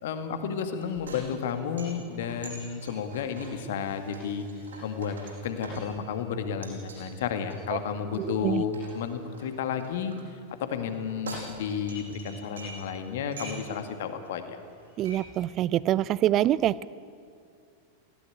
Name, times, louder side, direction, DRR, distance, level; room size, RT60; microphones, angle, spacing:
voice 1, 0.0-4.5 4.8-5.1 5.4-14.6, left 7 dB, 55° left, 8 dB, 2.1 m, -32 dB
sound 1, 0.8-6.2 6.6-7.1 7.5-10.2 10.9-12.9 13.2-13.8 14.2-14.3 14.6-15.2, right 2 dB, 70° right, 7.9 m, -45 dB
voice 2, 8.2-8.6 15.0-16.9, right 13 dB, 35° right, 21 dB, 0.5 m, -25 dB
19.5 x 17.0 x 9.9 m, 2.4 s
figure-of-eight pair, 90°, 0 cm